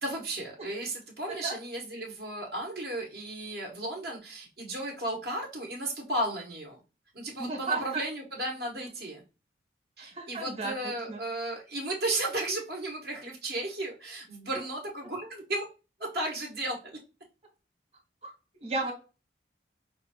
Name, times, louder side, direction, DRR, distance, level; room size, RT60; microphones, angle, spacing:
voice 1, 0.0-6.8 7.1-9.2 10.0-15.6 16.0-16.8, right 1 dB, 60° right, -1 dB, 1.0 m, -34 dB
voice 2, 7.4-8.0 10.0-11.2 18.2-18.3 18.6-18.9, right 3 dB, 35° right, 0 dB, 1.2 m, -34 dB
5.1 x 2.2 x 2.9 m, 0.31 s
head